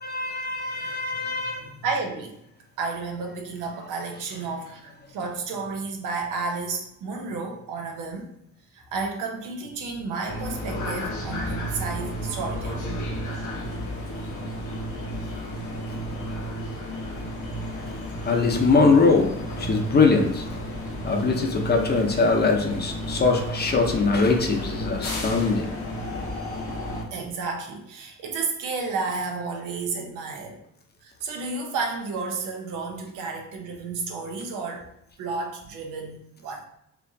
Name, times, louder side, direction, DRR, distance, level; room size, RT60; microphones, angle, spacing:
voice 1, 0.0-1.6 18.2-20.4 21.0-25.7, left 4 dB, 35° left, 2 dB, 0.7 m, -22 dB
voice 2, 1.8-2.4 2.8-8.3 8.7-12.9 27.1-30.6 31.0-34.9 35.2-36.6, right 4 dB, 90° right, 2 dB, 0.7 m, -32 dB
sound 1, 10.2-27.0, equal, 75° left, 1.1 m, -32 dB
4.4 x 2.4 x 2.7 m, 0.79 s
cardioid pair, 90°, 30 cm